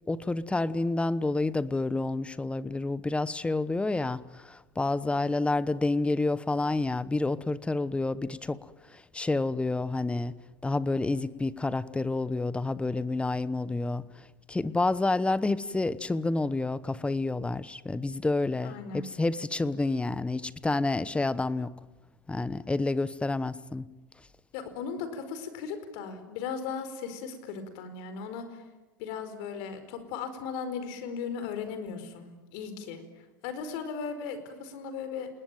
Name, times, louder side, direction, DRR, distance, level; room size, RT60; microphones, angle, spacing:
voice 1, 0.1-10.3 10.6-21.7 22.3-23.9, left 2 dB, 10° left, 17 dB, 1.0 m, -29 dB
voice 2, 18.6-19.1 24.5-28.4 29.0-33.0 33.4-35.3, left 6 dB, 55° left, 10 dB, 4.8 m, -37 dB
29.0 x 19.5 x 9.3 m, 1.2 s
hypercardioid pair, 100°, 12 cm